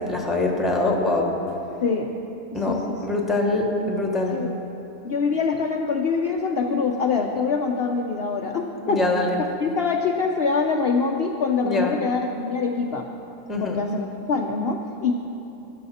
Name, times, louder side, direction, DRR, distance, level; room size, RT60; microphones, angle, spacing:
voice 1, 0.0-1.4 2.5-4.4 8.9-9.4 11.6-12.0 13.5-13.8, left 2 dB, ahead, 1 dB, 0.9 m, -24 dB
voice 2, 5.0-9.0 9.4-13.1 13.6-15.1, left 5 dB, 55° left, 2 dB, 0.7 m, -24 dB
14.5 x 11.0 x 4.2 m, 2.9 s
omnidirectional pair, 1.7 m